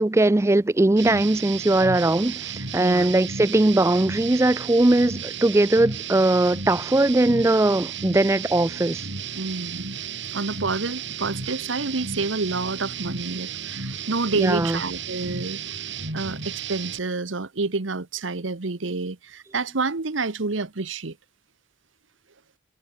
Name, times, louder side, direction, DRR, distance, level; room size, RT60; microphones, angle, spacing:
voice 1, 0.0-9.0 14.4-14.8, right 2 dB, 15° right, 0.3 m, -20 dB
sound 1, 1.0-17.0, right 6 dB, 70° right, 5.8 m, -33 dB
voice 2, 2.8-3.2 9.3-9.9 10.3-15.6 16.1-21.2, right 3 dB, 90° right, 1.2 m, -28 dB
head